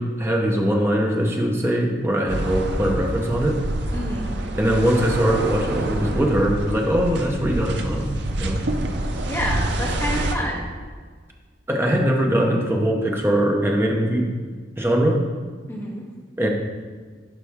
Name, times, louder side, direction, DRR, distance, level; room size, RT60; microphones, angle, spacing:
voice 1, 0.0-3.6 4.6-8.6 11.7-14.3 14.8-15.2 16.4-16.5, equal, 15° right, 0 dB, 0.8 m, -21 dB
sound 1, 2.3-10.3, right 1 dB, 65° right, 0.6 m, -27 dB
voice 2, 3.9-4.4 9.2-10.6 15.7-16.0, equal, 15° left, -6 dB, 1.8 m, -28 dB
11.0 x 4.1 x 3.6 m, 1.5 s
head